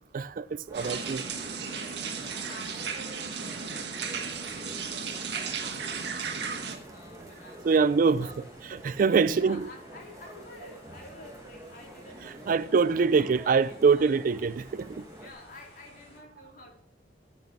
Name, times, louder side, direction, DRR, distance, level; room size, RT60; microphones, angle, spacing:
voice 1, 0.1-1.2 6.0-6.2 6.7-6.8 7.6-8.3 8.6-9.7 12.5-15.0, right 5 dB, 50° right, 0.4 m, -24 dB
voice 2, 0.7-8.5 9.3-14.2 15.2-16.7, left 1 dB, 50° left, 3.4 m, -50 dB
sound 1, 0.7-15.3, right 1 dB, 20° right, 1.0 m, -48 dB
sound 2, 0.7-6.8, right 6 dB, 65° right, 1.5 m, -35 dB
sound 3, 0.8-16.2, left 1 dB, 35° left, 5.1 m, -56 dB
13.5 x 6.2 x 6.0 m
head